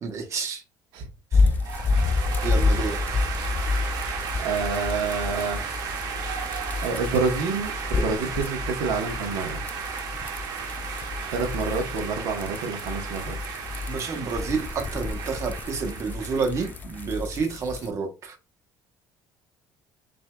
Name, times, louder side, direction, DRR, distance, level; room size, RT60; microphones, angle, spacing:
voice 1, 0.0-0.6 1.3-1.5 2.4-3.2 13.9-18.4, right 5 dB, 40° right, 1.0 m, -30 dB
sound 1, 1.3-17.9, left 3 dB, 25° left, 0.3 m, -29 dB
sound 2, 1.6-17.1, right 7 dB, 60° right, 1.0 m, -34 dB
voice 2, 3.9-5.6 6.8-9.6 11.3-13.4, right 4 dB, 90° right, 1.0 m, -28 dB
6.0 x 2.7 x 2.2 m
cardioid pair, 140°, 8 cm